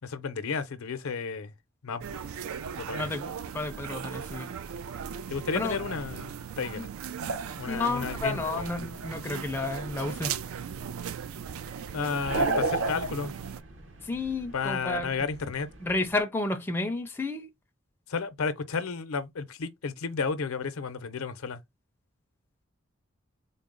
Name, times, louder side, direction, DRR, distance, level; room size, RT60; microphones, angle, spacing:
voice 1, 0.0-1.5 1.8-2.2 2.8-3.1 5.3-6.9 7.6-8.7 11.9-13.3 14.5-15.7 18.1-21.6, left 5 dB, 80° left, 0.6 m, -32 dB
sound 1, 2.0-13.6, right 7 dB, 75° right, 0.3 m, -38 dB
voice 2, 3.0-4.5 5.5-5.8 6.7-6.8 7.7-10.3 14.0-15.3 15.8-17.5, left 2 dB, 10° left, 0.4 m, -31 dB
sound 2, 7.2-16.2, right 3 dB, 55° right, 0.8 m, -36 dB
3.9 x 2.0 x 3.7 m
head